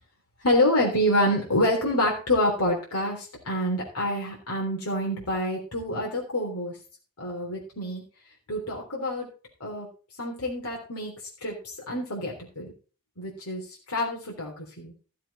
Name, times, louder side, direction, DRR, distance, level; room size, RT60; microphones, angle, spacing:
voice 1, 0.4-6.8 7.2-8.0 8.5-9.3 9.6-9.9 10.2-11.1 11.4-12.7 13.2-14.9, left 1 dB, 85° left, -2 dB, 3.5 m, -27 dB
14.0 x 7.6 x 4.2 m, 0.36 s
head